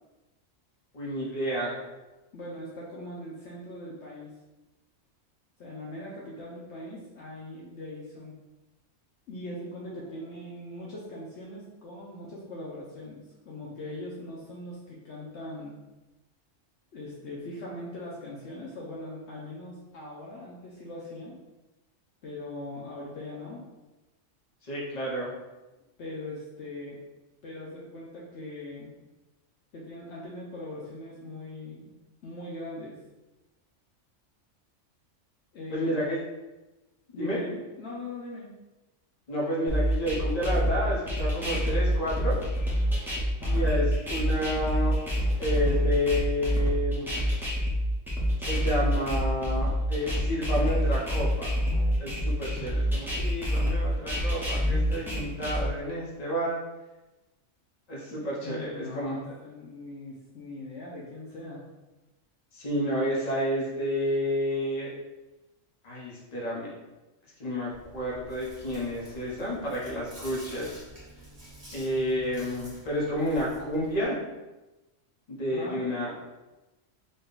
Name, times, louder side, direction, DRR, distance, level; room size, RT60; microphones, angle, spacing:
voice 1, 0.9-1.8 24.6-25.3 35.7-36.2 37.2-37.4 39.3-42.4 43.5-45.0 45.4-47.1 48.4-51.5 52.0-56.6 57.9-59.4 62.5-64.9 65.8-66.7 67.4-70.8 71.7-74.2 75.3-76.1, equal, 35° left, -5 dB, 1.0 m, -30 dB
voice 2, 2.3-4.3 5.6-8.4 9.3-15.8 16.9-21.4 22.2-23.6 26.0-27.0 27.4-28.9 29.7-31.9 32.2-33.0 35.5-36.0 37.1-38.5 43.3-43.7 58.1-61.6 75.5-75.8, left 1 dB, 65° left, -4 dB, 0.9 m, -40 dB
sound 1, 39.7-55.7, equal, ahead, 0.5 m, -27 dB
Chewing mastication, 67.7-74.0, right 1 dB, 35° right, 0.9 m, -48 dB
3.9 x 2.2 x 3.8 m, 1.1 s
omnidirectional pair, 1.3 m